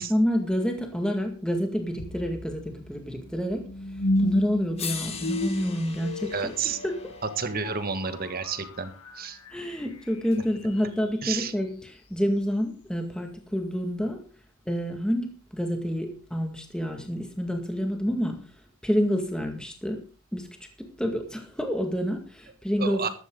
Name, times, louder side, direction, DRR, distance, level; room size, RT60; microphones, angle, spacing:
voice 1, 0.0-3.7 4.2-6.5 6.8-7.1 9.5-14.3 14.7-18.4 18.8-20.0 20.3-20.5 20.8-23.1, equal, 5° left, 3 dB, 2.0 m, -28 dB
sound 1, 2.0-11.1, left 1 dB, 85° left, 1.5 m, -34 dB
sound 2, 4.2-4.3 4.8-9.0 10.3-10.4, left 6 dB, 30° left, 2.1 m, -41 dB
voice 2, 6.3-6.8 7.2-9.4 11.2-11.5 22.8-23.1, right 5 dB, 45° right, 9 dB, 1.7 m, -30 dB
14.5 x 12.5 x 3.9 m, 0.34 s
head